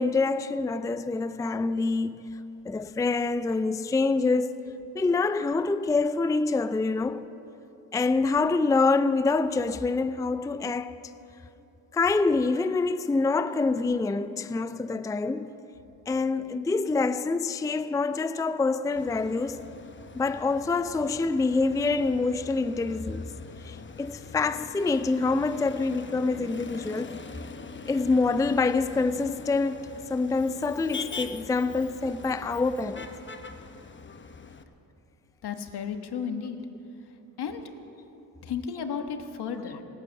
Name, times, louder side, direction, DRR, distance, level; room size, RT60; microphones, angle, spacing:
voice 1, 0.0-2.4 2.7-4.6 4.9-7.2 7.9-10.9 11.9-15.6 16.1-19.6 20.2-23.3 23.6-27.2 27.9-33.1, left 3 dB, 10° left, 0.4 m, -26 dB
Motor vehicle (road), 19.0-34.6, left 4 dB, 30° left, 0.9 m, -43 dB
voice 2, 35.4-36.6 37.4-37.7 38.4-39.8, left 7 dB, 75° left, 1.4 m, -33 dB
25.0 x 9.0 x 6.4 m
cardioid pair, 70°, 40 cm